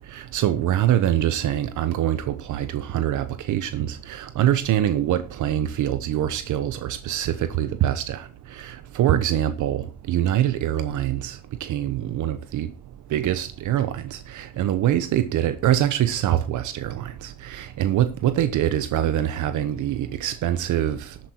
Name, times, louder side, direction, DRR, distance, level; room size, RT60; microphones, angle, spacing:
voice 1, 0.0-21.3, right 11 dB, 80° right, 1.0 m, -24 dB
12.5 x 8.7 x 4.5 m
cardioid pair, 90°, 30 cm